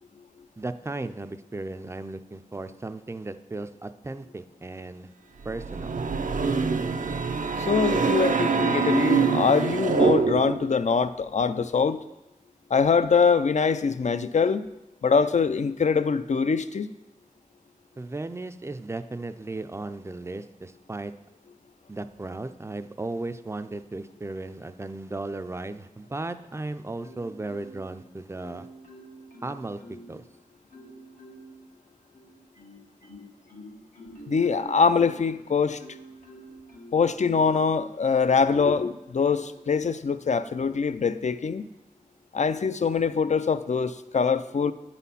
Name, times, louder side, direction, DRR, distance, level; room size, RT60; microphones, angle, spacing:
voice 1, 0.6-5.1 5.4-6.0 18.0-21.1 21.9-28.7 29.4-30.3, right 2 dB, 20° right, 10 dB, 0.4 m, -36 dB
sound 1, 5.4-10.7, right 5 dB, 65° right, 0.5 m, -25 dB
voice 2, 7.6-12.0 12.7-14.7 15.0-16.9 34.3-35.8 36.9-41.7 42.3-44.7, left 5 dB, 55° left, 12 dB, 0.4 m, -23 dB
Marimba xylophone, 27.0-28.0 28.4-30.2 30.7-31.6 32.1-37.6 38.1-39.0 39.5-39.8, right 1 dB, 90° left, 1.4 m, -47 dB
8.9 x 4.2 x 5.6 m, 0.95 s
wide cardioid pair, 50°, 14 cm